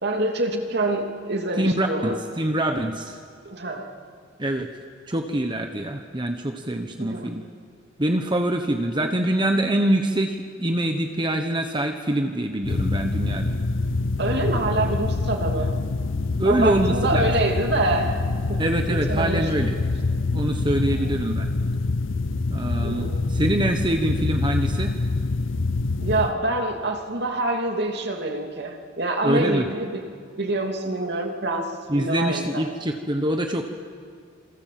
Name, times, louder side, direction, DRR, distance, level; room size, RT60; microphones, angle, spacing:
voice 1, 0.0-2.2 3.4-3.9 7.0-7.3 14.2-15.7 16.4-19.5 20.9-21.1 22.8-23.2 26.0-30.0 30.4-32.7, right 2 dB, 60° right, 3 dB, 2.9 m, -26 dB
voice 2, 1.6-3.2 4.4-4.7 5.1-7.4 8.0-13.6 16.4-17.3 18.6-19.8 20.3-21.5 22.5-24.9 29.2-29.7 31.9-33.6, right 1 dB, 25° right, 4 dB, 1.2 m, -24 dB
sound 1, 12.6-26.3, left 3 dB, 85° left, 0.7 m, -25 dB
27.5 x 25.0 x 7.7 m, 2.1 s
head